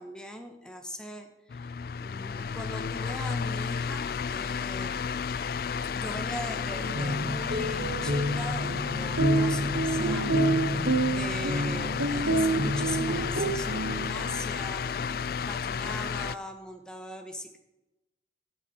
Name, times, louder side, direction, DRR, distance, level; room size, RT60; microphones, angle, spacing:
voice 1, 0.0-5.0 5.9-17.6, equal, 5° left, 5 dB, 1.1 m, -41 dB
sound 1, 1.5-16.4, left 6 dB, 55° left, 0.3 m, -32 dB
sound 2, 5.6-8.0 8.6-11.9, right 1 dB, 30° right, 0.8 m, -44 dB
sound 3, 6.8-14.4, right 1 dB, 75° right, 1.1 m, -28 dB
15.5 x 8.2 x 4.3 m, 0.98 s
head